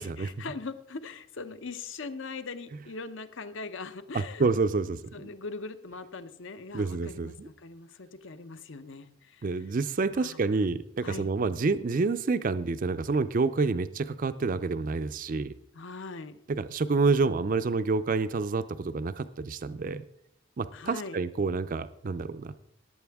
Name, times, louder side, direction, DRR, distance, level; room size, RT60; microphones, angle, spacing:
voice 1, 0.4-4.5 5.1-7.3 7.6-9.5 10.2-10.4 11.0-11.3 15.7-16.4 20.7-21.2, left 4 dB, 60° left, 12 dB, 0.8 m, -40 dB
voice 2, 4.1-5.3 6.7-7.5 9.4-15.5 16.5-20.0 20.6-22.5, right 4 dB, 40° right, 12 dB, 0.4 m, -28 dB
18.0 x 8.4 x 3.5 m, 0.73 s
head